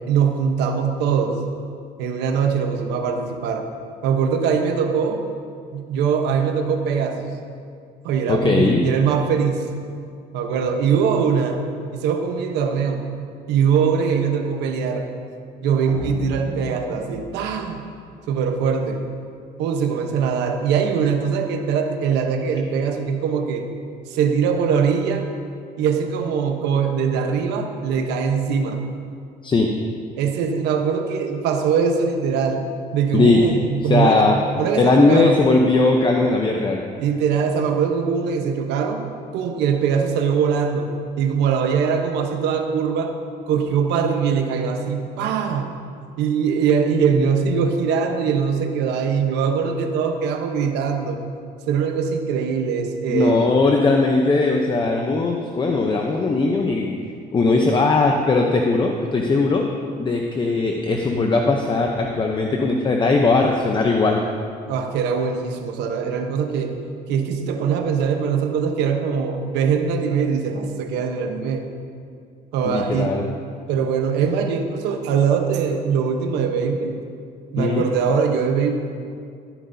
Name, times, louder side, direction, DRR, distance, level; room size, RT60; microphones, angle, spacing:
voice 1, 0.1-1.4 2.0-3.7 4.0-5.2 5.7-7.3 8.0-9.7 10.3-11.6 11.9-13.1 13.5-15.1 15.6-17.8 18.3-19.0 19.6-23.7 24.1-25.3 25.8-28.8 30.2-32.7 32.9-34.3 34.6-35.4 37.0-39.1 39.3-43.1 43.5-45.7 46.2-51.2 51.7-53.5 64.7-66.8 67.1-71.7 72.5-73.2 73.7-77.0 77.5-78.7, right 6 dB, 90° right, 5 dB, 1.0 m, -22 dB
voice 2, 8.3-8.9 29.4-29.7 33.1-33.4 33.9-34.4 34.8-36.8 53.1-57.0 57.3-59.7 60.0-64.2 72.7-73.2 77.6-77.8, left 3 dB, 30° left, 2 dB, 0.8 m, -19 dB
sound 1, 15.9-19.0, right 2 dB, 25° right, 1.6 m, -36 dB
14.5 x 10.5 x 2.8 m, 2.3 s
cardioid pair, 110°, 17 cm